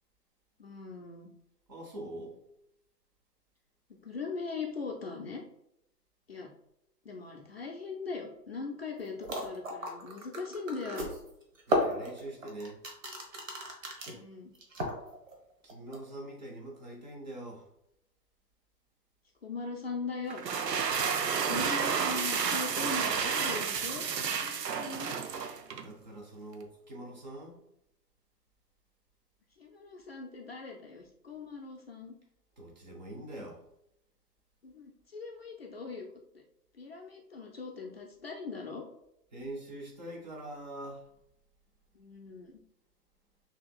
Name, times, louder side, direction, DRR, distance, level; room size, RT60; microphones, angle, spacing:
voice 1, 0.6-1.3 4.0-5.4 6.3-6.5 7.0-11.1 14.1-14.5 19.4-20.4 21.4-24.0 24.3-25.2 29.6-32.2 34.6-36.1 36.3-36.4 36.7-38.8 41.9-42.6, left 4 dB, 40° left, 0 dB, 0.5 m, -40 dB
voice 2, 1.7-2.4 11.7-12.8 15.6-17.7 25.8-27.6 32.6-33.6 39.3-41.0, right 1 dB, 30° right, 0 dB, 0.7 m, -43 dB
sound 1, 9.0-9.1 9.2-14.2 14.6-15.3 15.7-16.0, equal, 50° right, 1.1 m, -34 dB
sound 2, 20.3-25.9, right 6 dB, 80° right, 0.6 m, -31 dB
5.8 x 2.9 x 2.3 m, 0.80 s
figure-of-eight pair, 140°, 49 cm